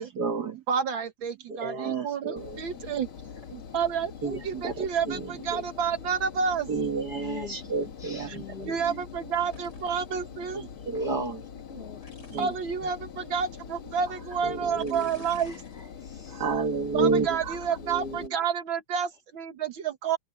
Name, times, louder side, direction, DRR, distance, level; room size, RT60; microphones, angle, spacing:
voice 1, 0.0-0.6 1.5-2.6 3.5-3.6 4.2-5.6 6.7-9.0 10.5-11.4 12.3-12.5 14.4-15.1 16.3-17.6 17.8-18.4, right 4 dB, 50° right, 2.1 m, -31 dB
voice 2, 0.7-3.1 3.7-6.7 8.7-10.7 12.4-15.6 16.9-20.2, right 6 dB, 70° right, 1.9 m, -29 dB
Engine, 2.4-18.3, left 7 dB, 75° left, 2.5 m, -43 dB
voice 3, 3.2-3.6 4.1-4.5 5.0-5.3 7.1-9.1 10.9-11.4 11.7-12.1 15.3-16.4, left 6 dB, 25° left, 3.3 m, -44 dB
sound 1, 9.5-10.1 12.0-12.6 13.5-13.6 14.8-15.9 16.3-16.6, left 3 dB, 50° left, 4.6 m, -52 dB
omnidirectional pair, 2.3 m